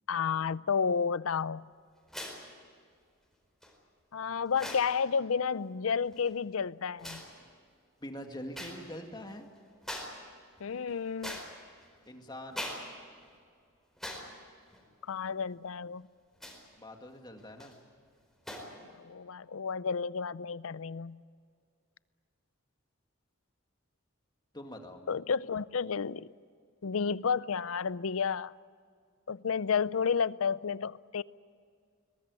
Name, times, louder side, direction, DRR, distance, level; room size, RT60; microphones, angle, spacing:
voice 1, 0.1-1.7 4.1-7.2 10.6-11.4 15.1-16.1 18.8-21.2 25.1-26.3 26.8-28.5 29.3-31.2, left 6 dB, 80° left, 0.5 m, -31 dB
sound 1, 2.1-2.5 3.6-3.7 4.5-4.9 6.0-6.3 7.0-7.3 8.5-8.8 9.2-9.3 9.8-10.2 10.6-11.8 12.5-12.9 13.2-13.3 14.0-14.3 14.7-14.8 16.4-16.7 17.4-17.7 18.5-18.7, equal, ahead, 4.4 m, -42 dB
voice 2, 8.0-9.5 12.1-12.7 16.8-17.8 24.5-25.0, equal, 20° left, 2.2 m, -44 dB
22.5 x 20.0 x 9.7 m
head